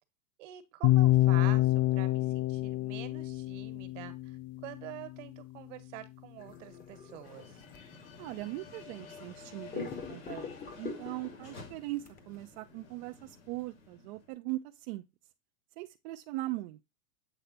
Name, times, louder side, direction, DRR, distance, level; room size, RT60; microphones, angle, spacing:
voice 1, 0.4-7.6, right 13 dB, 65° right, 1.5 m, -46 dB
sound 1, 0.8-4.9, left 16 dB, 45° left, 0.6 m, -27 dB
sound 2, 6.4-9.4 9.7-11.4 12.1-12.2, left 6 dB, 20° left, 0.9 m, -44 dB
sound 3, 7.2-14.3, left 4 dB, 90° left, 3.0 m, -52 dB
voice 2, 8.2-15.0 15.8-16.8, right 18 dB, 50° right, 0.6 m, -40 dB
8.1 x 3.3 x 4.0 m
supercardioid pair, 130°, 40 cm